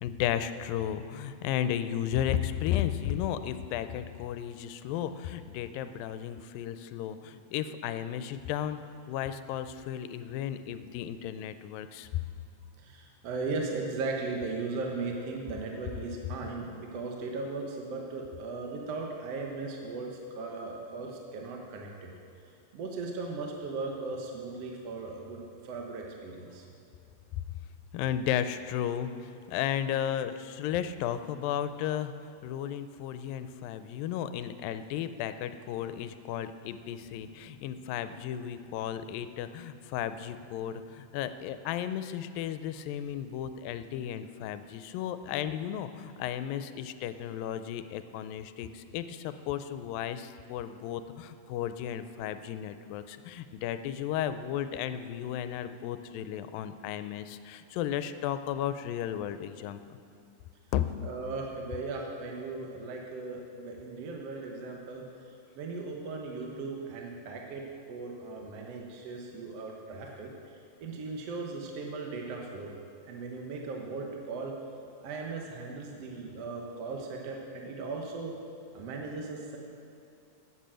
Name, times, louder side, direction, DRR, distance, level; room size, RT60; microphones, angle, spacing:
voice 1, 0.0-8.8 9.1-12.1 27.9-59.8 60.7-60.9, left 10 dB, 90° left, 11 dB, 2.4 m, -34 dB
voice 2, 12.8-22.1 22.7-26.7 61.0-65.0 65.6-67.6 67.9-70.3 70.8-72.7 73.1-74.5 75.0-78.3 78.7-79.6, right 3 dB, 60° right, 1 dB, 1.8 m, -37 dB
12.5 x 9.3 x 7.6 m, 2.6 s
omnidirectional pair, 4.0 m